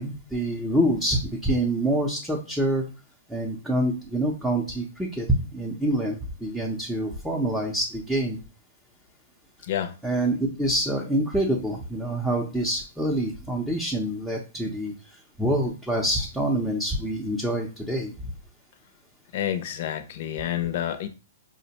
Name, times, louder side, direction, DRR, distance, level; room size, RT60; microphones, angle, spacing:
voice 1, 0.0-2.8 3.3-5.3 5.5-8.4 10.0-14.9 15.4-18.3, right 1 dB, ahead, 0.6 m, -26 dB
voice 2, 19.3-21.1, left 11 dB, 55° left, 0.6 m, -29 dB
4.8 x 2.1 x 2.8 m
hypercardioid pair, 140°, 0 cm